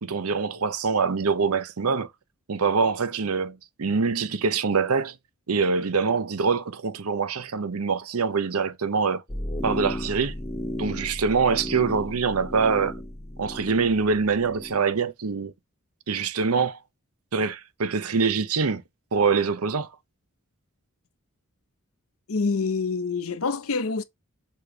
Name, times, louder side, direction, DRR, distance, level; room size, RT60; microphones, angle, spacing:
voice 1, 0.0-2.1 2.5-5.2 5.5-9.2 9.6-10.3 10.8-12.9 13.4-15.5 16.1-16.8 17.3-18.8 19.1-19.9, right 5 dB, 80° right, 0.8 m, -24 dB
sound 1, 9.3-14.8, equal, 15° left, 0.7 m, -34 dB
voice 2, 22.3-24.0, left 4 dB, 65° left, 0.7 m, -26 dB
6.9 x 3.0 x 4.8 m
head